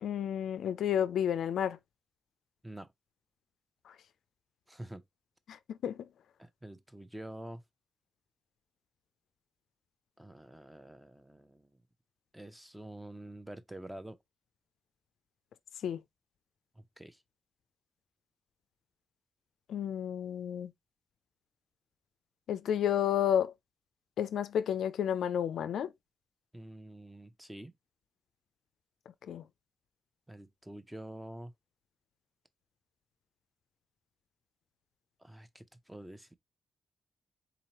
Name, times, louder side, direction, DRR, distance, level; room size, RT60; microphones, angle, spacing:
voice 1, 0.0-1.8 3.9-4.0 5.5-6.1 15.8-16.0 19.7-20.7 22.5-23.5 24.2-25.9 29.2-29.5, left 9 dB, 80° left, 0.3 m, -31 dB
voice 2, 4.7-5.0 6.4-7.6 10.2-11.8 12.3-14.2 16.7-17.2 26.5-27.7 30.3-31.5 35.2-36.3, right 1 dB, 10° right, 0.6 m, -47 dB
3.9 x 2.9 x 2.9 m
cardioid pair, 60°, 0 cm